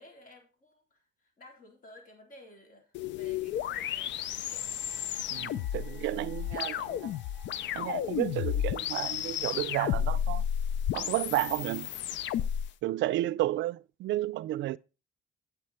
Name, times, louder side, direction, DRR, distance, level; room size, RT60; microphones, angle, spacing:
voice 1, 0.0-4.7 5.9-6.2 6.5-6.8, left 1 dB, 50° left, 4.0 m, -54 dB
sound 1, 3.0-12.7, left 10 dB, 80° left, 0.5 m, -32 dB
sound 2, 3.3-10.4, right 2 dB, 5° left, 2.5 m, -60 dB
voice 2, 5.3-7.0 7.7-10.4 10.9-11.9 12.8-14.8, right 15 dB, 85° right, 0.4 m, -32 dB
8.4 x 8.0 x 4.3 m
cardioid pair, 110°, 19 cm